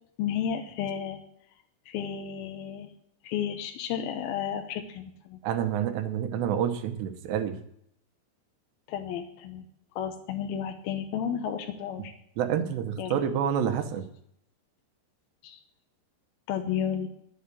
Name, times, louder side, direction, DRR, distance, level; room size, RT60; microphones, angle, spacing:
voice 1, 0.2-1.2 1.9-2.9 3.2-5.4 8.9-9.6 10.0-12.1 13.0-13.2 15.4-15.6 16.5-17.1, left 8 dB, 75° left, 4 dB, 2.5 m, -32 dB
voice 2, 5.4-7.6 12.4-14.0, right 9 dB, 85° right, 7 dB, 3.2 m, -28 dB
11.5 x 7.8 x 8.4 m, 0.71 s
omnidirectional pair, 4.8 m